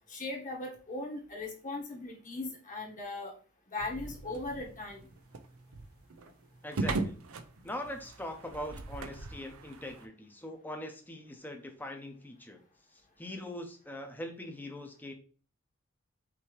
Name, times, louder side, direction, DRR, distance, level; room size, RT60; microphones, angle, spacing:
voice 1, 0.1-3.3 3.7-5.0, left 2 dB, 40° left, 0 dB, 1.4 m, -38 dB
sound 1, 3.8-10.1, right 3 dB, 85° right, 0.6 m, -39 dB
voice 2, 6.6-7.2 7.6-12.6 13.2-15.1, left 1 dB, 10° left, 5 dB, 0.8 m, -42 dB
5.8 x 2.9 x 3.2 m, 0.39 s
head